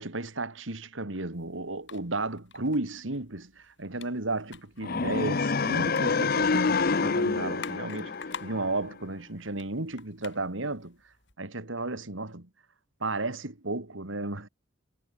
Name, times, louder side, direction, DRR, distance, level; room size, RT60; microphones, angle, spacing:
voice 1, 0.0-11.0 11.4-12.5 13.0-14.5, right 2 dB, 75° right, 2.7 m, -34 dB
sound 1, 1.3-11.3, left 6 dB, 65° left, 7.1 m, -50 dB
sound 2, 4.8-8.9, left 4 dB, 50° left, 0.8 m, -27 dB
head